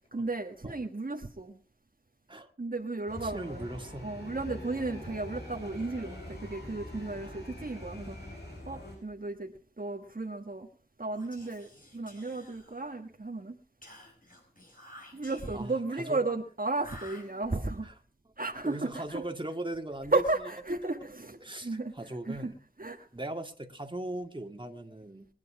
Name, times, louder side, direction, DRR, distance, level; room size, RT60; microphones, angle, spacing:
voice 1, 0.1-1.6 2.6-3.6 4.0-8.3 8.7-9.5 9.8-10.7 11.0-13.6 15.1-17.9 18.4-19.2 20.1-21.9 22.3-22.5 22.8-23.1, right 3 dB, 55° right, 2 dB, 1.4 m, -34 dB
sound 1, 3.1-9.0, left 1 dB, 65° left, 7.3 m, -44 dB
voice 2, 3.2-4.1 7.2-7.4 15.5-16.2 17.5-17.9 18.6-20.2 20.8-21.1 21.4-22.6 23.1-25.3, right 1 dB, 30° right, 4 dB, 2.0 m, -39 dB
Whispering, 11.1-13.1 13.8-15.8 16.7-17.8, left 1 dB, 50° left, 5.7 m, -52 dB
22.0 x 9.6 x 4.8 m, 0.40 s
wide cardioid pair, 45°, 18 cm